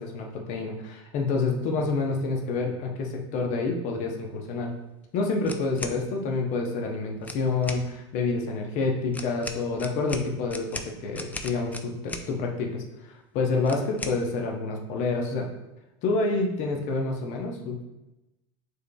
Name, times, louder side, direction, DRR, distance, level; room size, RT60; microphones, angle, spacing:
voice 1, 0.0-4.7 5.1-15.5 16.0-17.8, left 3 dB, 55° left, 1 dB, 0.9 m, -28 dB
sound 1, 5.4-6.0 7.2-7.8 9.1-12.3 13.6-14.2, left 2 dB, 10° left, 0.4 m, -37 dB
6.4 x 3.3 x 2.3 m, 0.98 s
hypercardioid pair, 95°, 15 cm